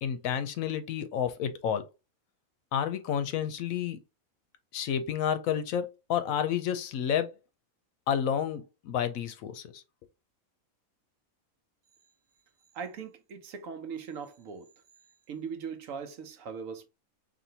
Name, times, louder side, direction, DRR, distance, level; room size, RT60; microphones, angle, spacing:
voice 1, 0.0-1.9 2.7-4.0 4.7-7.3 8.1-9.8, left 8 dB, 75° left, 1.0 m, -30 dB
voice 2, 12.7-14.7 15.3-16.9, right 6 dB, 70° right, 1.1 m, -40 dB
4.3 x 2.9 x 2.7 m
omnidirectional pair, 1.5 m